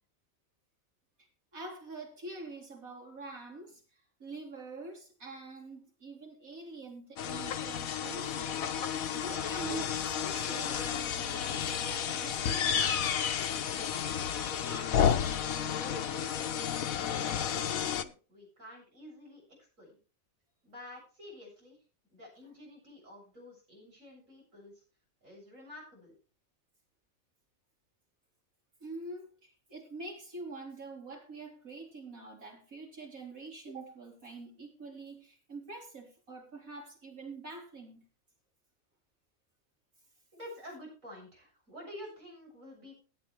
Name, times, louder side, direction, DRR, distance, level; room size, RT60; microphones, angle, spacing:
voice 1, 1.5-12.7 28.8-38.0, right 3 dB, 90° right, 0 dB, 4.8 m, -45 dB
sound 1, 7.2-18.0, left 8 dB, 90° left, 1.3 m, -32 dB
voice 2, 14.5-20.0 20.6-21.8 22.1-24.8 25.2-26.1 40.3-43.0, left 1 dB, 70° right, -1 dB, 8.1 m, -50 dB
17.0 x 10.0 x 3.4 m, 0.36 s
omnidirectional pair, 1.4 m